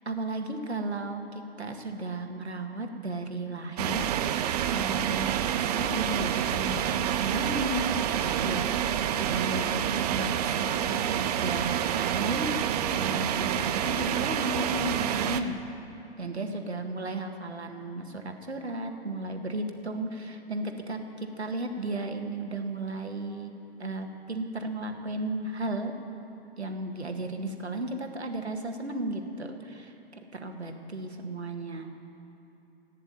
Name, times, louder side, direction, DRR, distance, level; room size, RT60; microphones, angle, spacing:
voice 1, 0.1-12.6 12.9-15.6 16.2-23.5 23.8-25.9 26.6-32.0, right 2 dB, 80° right, 4 dB, 1.9 m, -34 dB
sound 1, 3.8-15.4, right 10 dB, 40° right, 0.7 m, -28 dB
15.5 x 9.9 x 9.5 m, 3.0 s
figure-of-eight pair, 110°, 32 cm